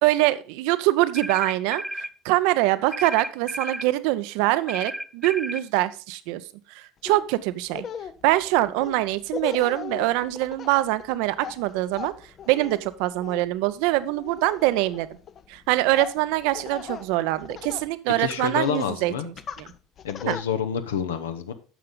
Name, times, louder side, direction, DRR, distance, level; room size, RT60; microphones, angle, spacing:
voice 1, 0.0-6.4 6.7-7.9 8.2-12.1 12.5-15.1 15.5-19.7 20.3-20.4, right 17 dB, 65° right, 14 dB, 0.5 m, -24 dB
sound 1, 1.1-2.1 2.9-3.9 4.7-5.7, right 1 dB, 5° right, 0.3 m, -33 dB
Laughter, 7.0-7.2 7.7-17.9 18.2-18.9 19.4-20.4, left 7 dB, 40° left, 0.6 m, -38 dB
voice 2, 18.2-19.3 20.0-21.5, left 8 dB, 80° left, 9 dB, 0.8 m, -28 dB
9.2 x 6.5 x 3.8 m, 0.35 s
hypercardioid pair, 70°, 0 cm